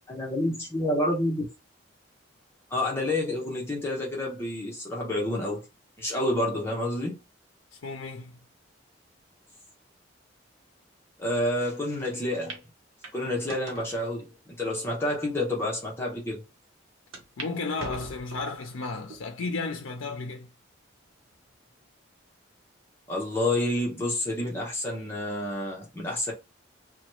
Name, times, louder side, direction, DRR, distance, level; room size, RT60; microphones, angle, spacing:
voice 1, 0.1-1.5 2.7-5.7 6.0-7.2 11.2-12.6 13.1-16.4 23.1-26.3, left 1 dB, 10° left, 0.8 m, -29 dB
voice 2, 7.8-8.3 17.4-20.5, left 3 dB, 80° left, 0.5 m, -33 dB
sound 1, 12.0-12.1 12.5-12.6 13.0-13.9 14.6-14.7 15.4-15.5 15.8-15.9 17.1-17.5 17.8-18.6 19.1-19.5 20.1-20.2 21.3-21.7, right 2 dB, 90° right, 0.9 m, -42 dB
2.8 x 2.2 x 3.0 m
head